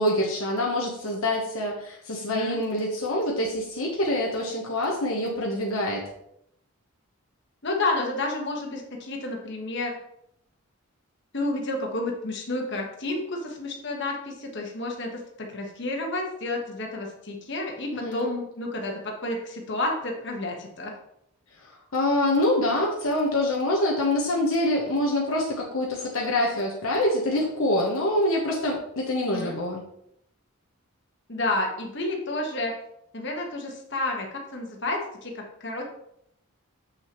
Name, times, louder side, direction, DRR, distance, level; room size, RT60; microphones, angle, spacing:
voice 1, 0.0-6.1 17.9-18.3 21.6-29.8, left 1 dB, 70° left, -2 dB, 1.2 m, -25 dB
voice 2, 2.2-2.6 7.6-10.0 11.3-21.0 29.3-29.6 31.3-32.8 33.1-35.8, left 2 dB, 50° left, 1 dB, 1.4 m, -30 dB
7.7 x 6.0 x 3.1 m, 0.76 s
head